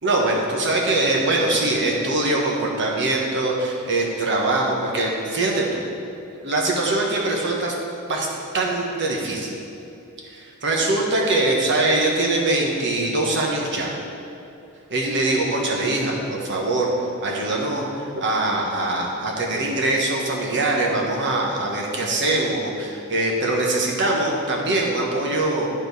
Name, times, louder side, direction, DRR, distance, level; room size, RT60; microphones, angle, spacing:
voice 1, 0.0-5.8 6.4-7.7 8.1-8.3 8.5-9.5 10.3-13.9 14.9-16.9 17.2-25.7, right 2 dB, 55° right, -1 dB, 1.2 m, -22 dB
10.0 x 4.4 x 4.1 m, 2.8 s
head